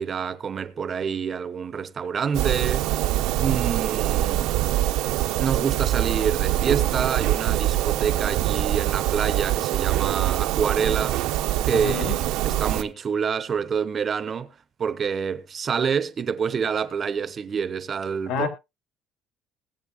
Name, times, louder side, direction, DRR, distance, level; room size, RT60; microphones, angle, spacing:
voice 1, 0.0-2.9 3.4-4.5 5.4-11.2 11.6-14.5 14.8-18.5, right 6 dB, 30° right, 0.8 m, -27 dB
sound 1, 2.3-12.8, right 14 dB, 75° right, 0.9 m, -24 dB
voice 2, 11.7-12.2 18.3-18.5, left 5 dB, 80° left, 2.9 m, -27 dB
20.5 x 7.8 x 2.4 m
cardioid pair, 155°, 0 cm